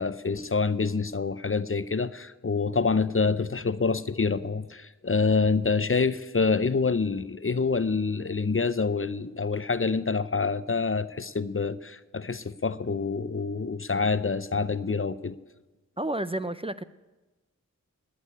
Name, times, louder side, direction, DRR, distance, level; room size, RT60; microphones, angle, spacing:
voice 1, 0.0-15.4, left 4 dB, 40° left, 15 dB, 0.6 m, -27 dB
voice 2, 16.0-16.8, right 1 dB, 20° right, 13 dB, 0.5 m, -30 dB
19.0 x 6.5 x 9.8 m, 1.2 s
wide cardioid pair, 45°, 32 cm